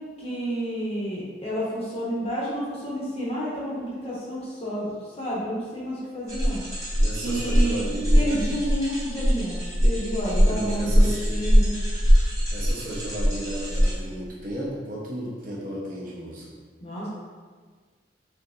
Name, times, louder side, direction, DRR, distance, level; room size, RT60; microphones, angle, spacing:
voice 1, 0.2-4.9 5.2-6.6 7.2-7.8 8.1-11.9 16.8-17.1, equal, 30° left, -6 dB, 0.7 m, -30 dB
sound 1, 6.3-13.9, equal, 15° right, 1.0 m, -22 dB
voice 2, 7.0-8.4 10.5-11.2 12.5-16.6, right 1 dB, 45° right, -5 dB, 0.7 m, -34 dB
3.4 x 2.8 x 2.5 m, 1.5 s
head